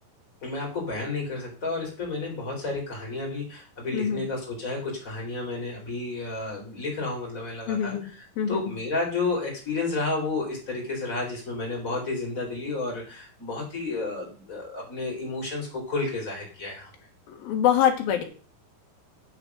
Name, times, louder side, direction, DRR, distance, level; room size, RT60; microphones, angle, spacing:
voice 1, 0.4-8.0 8.5-16.9, left 3 dB, 20° left, -2 dB, 4.0 m, -31 dB
voice 2, 3.9-4.2 7.7-8.1 8.4-8.8 17.3-18.2, left 9 dB, 70° left, 3 dB, 3.3 m, -24 dB
8.7 x 6.5 x 6.2 m, 0.39 s
omnidirectional pair, 4.5 m